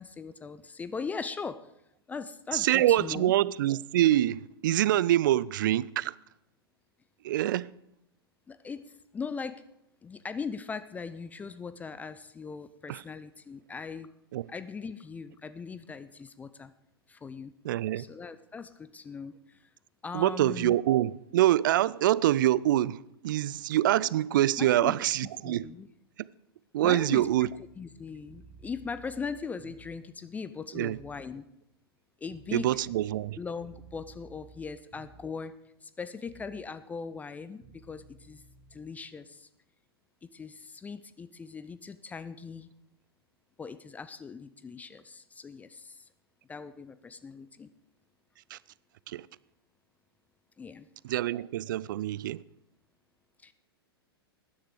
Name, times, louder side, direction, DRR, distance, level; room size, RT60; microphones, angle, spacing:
voice 1, 0.0-1.6 2.1-3.3 8.5-8.8 9.1-9.6 10.0-14.1 14.5-16.7 17.1-17.5 18.0-19.7 20.0-20.8 24.6-24.9 25.4-25.9 26.8-27.5 27.8-31.4 32.2-32.7 33.4-35.5 35.8-38.4 38.7-39.5 40.2-42.7 43.6-46.1 46.5-47.7 50.6-50.9 53.4-53.5, left 5 dB, 10° left, 0.4 m, -40 dB
voice 2, 2.5-6.1 7.2-7.7 12.9-13.0 14.3-14.5 17.6-18.1 20.1-25.7 26.2-26.3 26.7-27.5 30.7-31.0 32.5-33.4 48.5-48.6 49.1-49.3 51.0-52.4, right 13 dB, 55° right, 0.4 m, -25 dB
sound 1, 27.1-30.1 30.9-31.3 32.3-35.5 36.3-36.7 37.6-38.8, right 3 dB, 25° right, 1.7 m, -55 dB
13.0 x 10.0 x 4.9 m
figure-of-eight pair, 100°, 13 cm